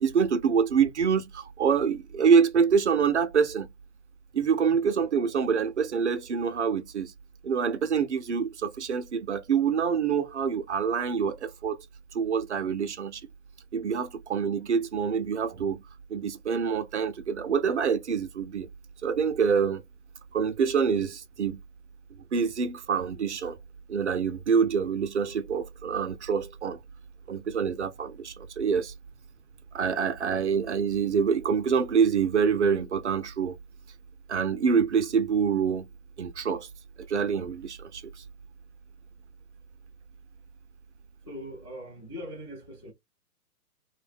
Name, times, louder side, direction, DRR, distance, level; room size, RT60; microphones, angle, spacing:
voice 1, 0.0-3.7 4.3-7.1 7.4-11.8 12.1-13.2 13.7-15.8 16.1-18.7 19.0-19.8 20.3-21.6 22.3-23.6 23.9-26.8 27.3-28.9 29.7-33.6 34.3-35.8 36.2-36.7 37.1-38.0, right 6 dB, 50° right, 0.4 m, -26 dB
voice 2, 41.2-42.9, equal, 20° left, 0.5 m, -41 dB
2.6 x 2.1 x 2.4 m
hypercardioid pair, 155°, 46 cm